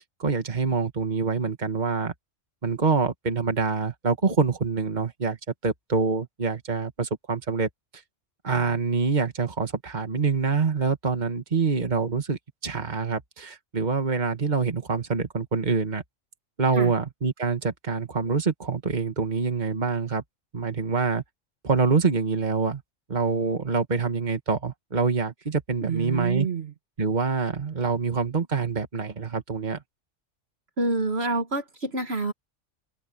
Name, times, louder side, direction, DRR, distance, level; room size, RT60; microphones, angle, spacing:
voice 1, 0.2-2.1 2.6-5.4 5.6-7.7 8.4-16.0 16.6-20.2 20.5-21.2 21.6-22.8 23.1-26.5 27.0-29.8, right 4 dB, 35° right, 1.9 m, -25 dB
voice 2, 25.8-26.7 30.8-32.3, right 3 dB, 55° right, 1.9 m, -27 dB
open air
omnidirectional pair, 1.3 m